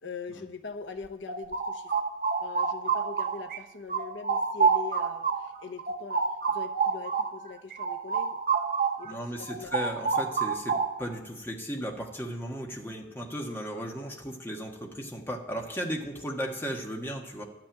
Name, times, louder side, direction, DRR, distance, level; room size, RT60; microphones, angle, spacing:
voice 1, 0.0-2.0 2.4-8.4 9.0-9.7, left 4 dB, 75° left, 6 dB, 0.8 m, -42 dB
sound 1, 1.0-3.6 3.9-9.1 9.4-11.2, right 5 dB, 50° right, 0.7 m, -28 dB
voice 2, 9.0-17.4, equal, 10° left, 0 dB, 1.4 m, -36 dB
12.0 x 6.0 x 8.9 m, 0.93 s
head